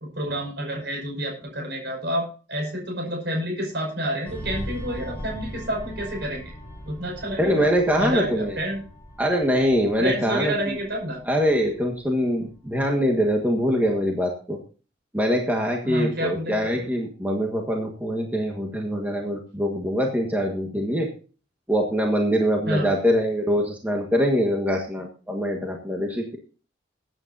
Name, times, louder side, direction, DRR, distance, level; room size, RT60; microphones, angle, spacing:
voice 1, 0.0-6.4 6.9-7.7 8.0-8.8 10.0-11.2 15.8-16.6 22.7-22.9, equal, 60° right, -1 dB, 5.7 m, -29 dB
sound 1, 4.2-13.3 13.6-13.9, equal, 10° left, 3.8 m, -40 dB
voice 2, 7.4-8.6 9.2-10.8 11.3-14.6 15.1-21.1 21.7-26.4, equal, 10° right, 0 dB, 1.5 m, -23 dB
21.0 x 9.1 x 2.7 m, 0.36 s
head